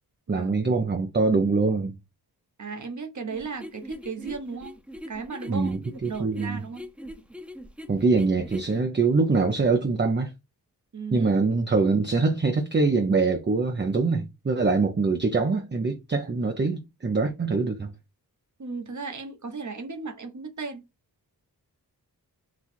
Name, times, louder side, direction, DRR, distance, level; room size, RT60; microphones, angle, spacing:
voice 1, 0.3-1.9 5.5-6.6 7.9-10.3 11.1-17.9, right 4 dB, 25° right, 0.6 m, -24 dB
voice 2, 2.6-4.7 5.1-5.7 6.1-6.9 10.9-11.3 18.6-20.8, right 4 dB, 45° right, 1.1 m, -35 dB
sound 1, 3.3-8.8, equal, 5° right, 0.9 m, -41 dB
4.0 x 2.3 x 4.4 m
cardioid pair, 50°, 40 cm